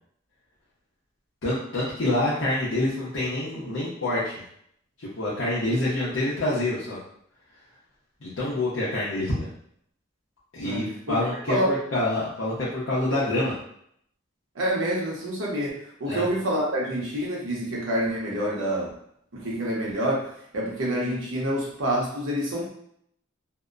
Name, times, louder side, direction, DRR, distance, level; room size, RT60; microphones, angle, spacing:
voice 1, 1.4-4.3 5.0-7.0 8.2-9.5 10.5-13.6 16.1-16.2, left 1 dB, 75° left, -9 dB, 0.8 m, -27 dB
voice 2, 10.6-11.2 11.5-11.7 14.5-18.9 19.3-22.7, equal, 80° right, -4 dB, 0.9 m, -27 dB
2.7 x 2.1 x 2.4 m, 0.68 s
head